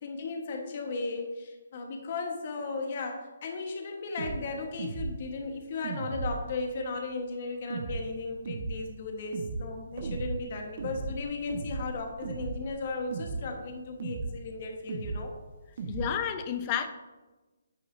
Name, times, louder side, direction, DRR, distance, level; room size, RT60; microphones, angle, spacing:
voice 1, 0.0-15.3, left 3 dB, 45° left, 3 dB, 1.4 m, -36 dB
sound 1, 4.2-4.4 4.8-5.2 5.8-6.5 7.7-8.0 8.5-8.8 9.3-9.7 10.0-10.4 10.8-11.2 11.5-11.9 12.2-12.7 13.1-13.5 14.0-14.4 14.9-15.2 15.8-16.1, right 4 dB, 50° right, 1.3 m, -35 dB
voice 2, 15.9-16.9, left 8 dB, 30° left, 7 dB, 0.9 m, -30 dB
11.0 x 8.1 x 2.7 m, 1.2 s
figure-of-eight pair, 145°, 0 cm